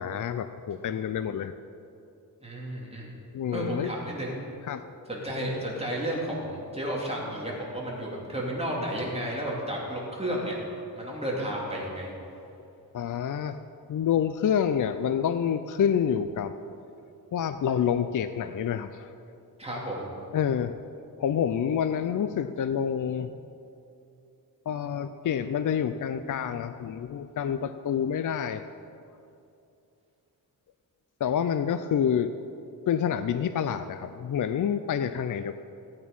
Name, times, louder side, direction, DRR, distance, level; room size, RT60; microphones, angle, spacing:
voice 1, 0.0-1.5 3.3-3.9 4.7-4.8 12.9-13.6 13.9-16.5 17.3-19.1 20.3-20.8 21.2-23.3 24.7-28.7 31.2-32.3 32.9-35.5, left 8 dB, 55° left, 10 dB, 0.5 m, -28 dB
voice 2, 2.4-3.1 3.5-4.3 5.1-10.5 11.0-12.1 19.6-20.1, equal, 15° right, -4 dB, 2.7 m, -32 dB
17.0 x 8.7 x 5.4 m, 2.6 s
wide cardioid pair, 110°, 38 cm